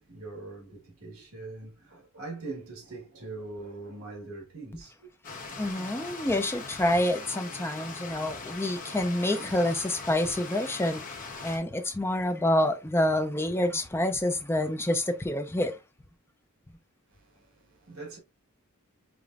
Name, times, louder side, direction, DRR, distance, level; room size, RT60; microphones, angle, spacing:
voice 1, 0.0-5.1 5.5-5.7 17.1-18.2, right 3 dB, 75° right, 1.5 m, -42 dB
Stream, 5.2-11.6, left 4 dB, 40° left, 1.0 m, -41 dB
voice 2, 5.6-11.0 11.4-15.7, left 1 dB, 10° left, 0.5 m, -27 dB
5.0 x 3.0 x 2.4 m
head